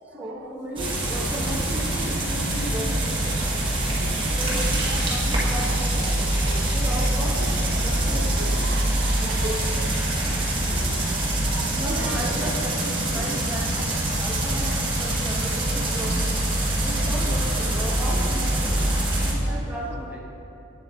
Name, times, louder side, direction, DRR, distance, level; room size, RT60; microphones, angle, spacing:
voice 1, 0.1-3.4 3.9-4.0 4.3-4.7 5.1-6.1 6.6-7.4 7.8-9.8 10.4-10.9 11.7-16.3 16.8-18.8 19.2-20.2, equal, 10° right, -3 dB, 0.9 m, -35 dB
sound 1, 0.8-19.3, right 1 dB, 25° right, 1.3 m, -24 dB
voice 2, 3.5-5.0 5.8-6.7 7.4-7.9 8.1-10.4 10.8-12.2 13.2-13.3 17.3-17.4 19.5-19.6, right 4 dB, 55° right, 6 dB, 0.3 m, -39 dB
8.3 x 7.2 x 3.5 m, 2.9 s
head